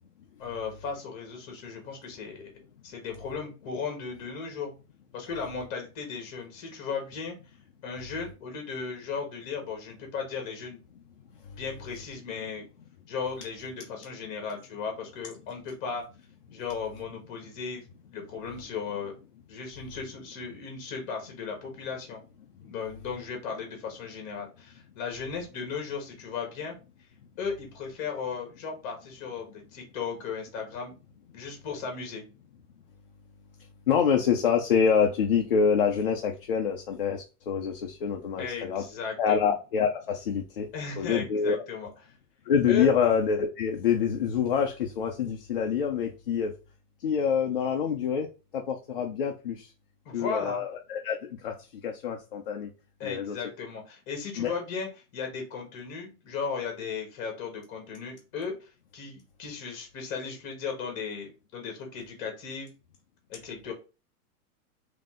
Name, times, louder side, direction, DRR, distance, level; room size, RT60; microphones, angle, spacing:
voice 1, 0.4-2.6 2.8-4.7 5.1-7.4 7.8-10.8 11.6-12.6 13.1-16.0 16.5-17.8 18.1-19.2 19.5-22.2 22.6-26.8 27.4-31.0 31.3-32.2 38.4-39.6 40.7-41.9 42.7-42.9 50.0-50.6 53.0-62.7 63.3-63.7, left 5 dB, 25° left, 2 dB, 1.3 m, -36 dB
voice 2, 33.9-38.8 39.2-40.7 41.0-41.6 42.5-46.5 47.0-48.3 48.5-49.7 50.1-51.2 51.4-51.5 51.8-52.7 53.0-53.4 54.4-54.5, left 7 dB, 40° left, 2 dB, 0.5 m, -26 dB
3.8 x 2.8 x 3.6 m, 0.31 s
supercardioid pair, 175°, 45 cm